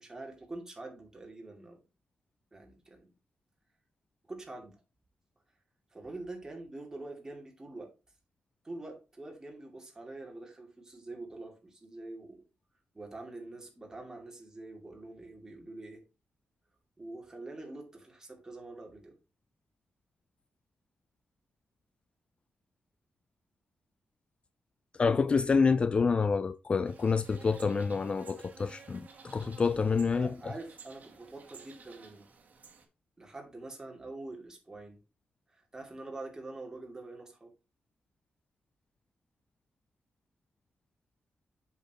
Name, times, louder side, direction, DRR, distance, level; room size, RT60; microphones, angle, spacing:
voice 1, 0.0-1.8 2.5-3.1 4.3-4.8 5.9-7.9 8.6-12.4 12.9-16.0 17.0-19.2 29.9-32.3 33.2-35.0 35.5-37.5, right 2 dB, 15° right, 2.5 m, -45 dB
voice 2, 24.9-30.3, left 5 dB, 30° left, 0.3 m, -27 dB
sound 1, 26.8-32.8, right 5 dB, 50° right, 1.9 m, -53 dB
7.9 x 6.6 x 2.9 m
wide cardioid pair, 150°, 4 cm